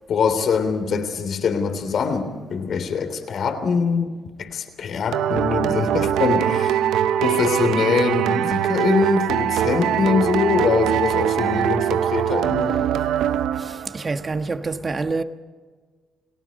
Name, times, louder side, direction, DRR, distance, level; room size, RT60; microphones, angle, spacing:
voice 1, 0.1-4.1 4.4-6.8 7.2-12.8, left 5 dB, 60° left, 3.2 m, -23 dB
sound 1, 5.1-14.0, right 10 dB, 85° right, 0.7 m, -22 dB
voice 2, 13.5-15.2, right 3 dB, 30° right, 1.3 m, -27 dB
30.0 x 18.5 x 5.3 m
cardioid pair, 90°, 0 cm